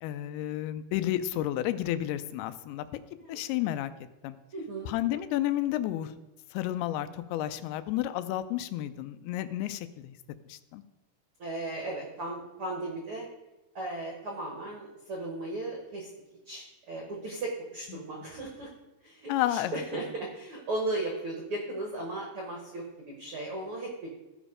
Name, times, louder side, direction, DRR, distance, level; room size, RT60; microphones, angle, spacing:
voice 1, 0.0-2.9 3.3-3.9 4.2-4.4 4.9-6.1 6.5-10.2 10.5-10.8 17.9-18.3 19.3-19.8, left 13 dB, 85° left, 12 dB, 2.5 m, -31 dB
voice 2, 3.1-3.5 4.5-4.9 11.4-13.3 13.7-16.1 16.4-18.7 19.0-24.1, right 2 dB, 75° right, 0 dB, 1.2 m, -36 dB
14.0 x 5.2 x 4.9 m, 1.0 s
omnidirectional pair, 4.5 m